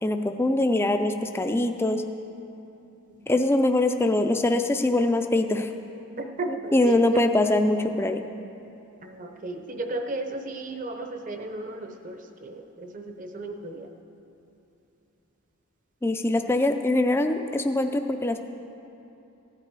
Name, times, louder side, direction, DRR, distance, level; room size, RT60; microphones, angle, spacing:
voice 1, 0.0-2.0 3.3-5.7 6.7-8.2 16.0-18.4, left 2 dB, 10° left, 6 dB, 0.3 m, -23 dB
voice 2, 6.2-7.2 9.0-13.9, right 2 dB, 35° right, 5 dB, 0.7 m, -34 dB
15.5 x 9.6 x 4.7 m, 2.8 s
head